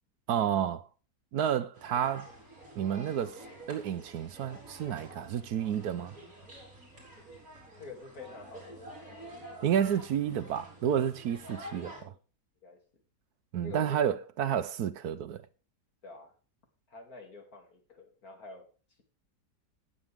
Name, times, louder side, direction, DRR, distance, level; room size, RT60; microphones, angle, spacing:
voice 1, 0.3-0.9 1.3-2.3 2.8-6.1 9.6-12.1 13.5-15.4, right 9 dB, 70° right, 1.2 m, -30 dB
sound 1, 1.7-12.0, right 1 dB, 55° right, 4.8 m, -48 dB
voice 2, 7.8-9.2 12.0-12.1 12.6-12.8 13.6-13.9 16.0-16.3 16.9-18.7, left 3 dB, 60° left, 3.2 m, -47 dB
18.5 x 7.5 x 3.5 m
omnidirectional pair, 1.8 m